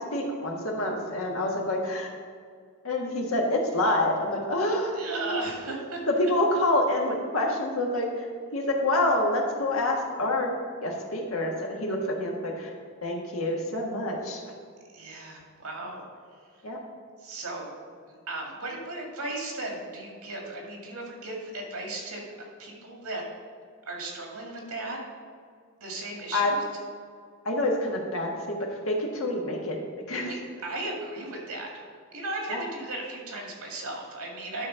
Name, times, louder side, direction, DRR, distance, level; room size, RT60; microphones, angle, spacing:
voice 1, 0.1-2.1 2.8-5.4 6.2-8.3 8.5-12.7 13.0-14.4 16.6-16.8 26.3-26.5 27.4-28.6 28.9-29.8 30.1-30.3 32.5-32.6, left 1 dB, 70° left, 0 dB, 1.5 m, -27 dB
voice 2, 4.9-6.0 14.9-16.0 17.2-17.7 18.3-22.2 22.6-23.2 23.9-25.0 25.8-26.6 30.2-30.3 30.6-31.7 32.1-34.7, right 2 dB, 85° right, -1 dB, 2.2 m, -36 dB
11.5 x 4.2 x 5.6 m, 2.1 s
head